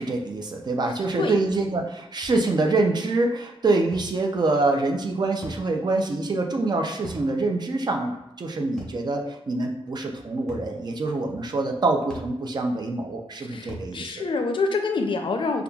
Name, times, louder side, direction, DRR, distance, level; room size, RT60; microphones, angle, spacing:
voice 1, 0.0-14.1, right 2 dB, 45° right, 3 dB, 0.5 m, -25 dB
voice 2, 0.8-1.3 13.5-15.6, left 3 dB, 60° left, 4 dB, 0.4 m, -27 dB
sound 1, 2.2-2.4 3.9-4.2 5.4-5.7 7.0-7.3 8.8-9.0 10.5-10.7 12.1-12.4 13.7-13.9, right 1 dB, 5° left, 0.8 m, -39 dB
5.2 x 2.3 x 2.3 m, 0.92 s
wide cardioid pair, 160°, 10 cm